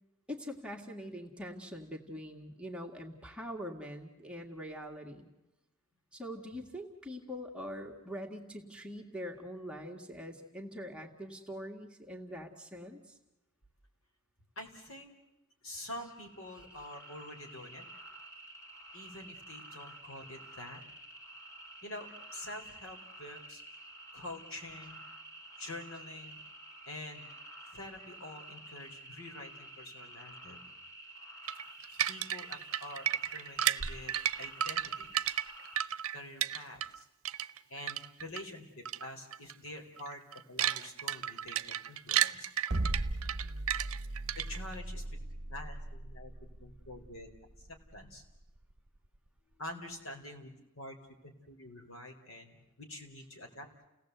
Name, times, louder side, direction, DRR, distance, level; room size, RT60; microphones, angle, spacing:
voice 1, 0.3-5.3 6.1-13.2, equal, 5° right, 1 dB, 2.0 m, -43 dB
voice 2, 14.6-15.1 15.6-17.9 18.9-20.8 21.8-23.6 24.1-25.0 25.6-26.4 26.9-27.2 27.7-30.6 32.1-33.1 33.3-35.1 36.1-37.1 37.7-40.2 40.5-42.5 44.3-45.2 45.5-46.3 46.6-47.3 47.6-48.2 49.6-50.5 50.8-51.0 51.2-53.9, left 1 dB, 65° left, 3 dB, 3.9 m, -46 dB
sound 1, 16.0-35.9, right 1 dB, 15° left, 2.0 m, -51 dB
sound 2, 31.5-37.0 37.3-38.4 38.9-39.1 39.3-39.5 40.0-44.8, right 10 dB, 75° right, 0.7 m, -33 dB
sound 3, 42.7-48.9, right 1 dB, 50° right, 1.0 m, -38 dB
30.0 x 17.5 x 8.0 m, 1.0 s
head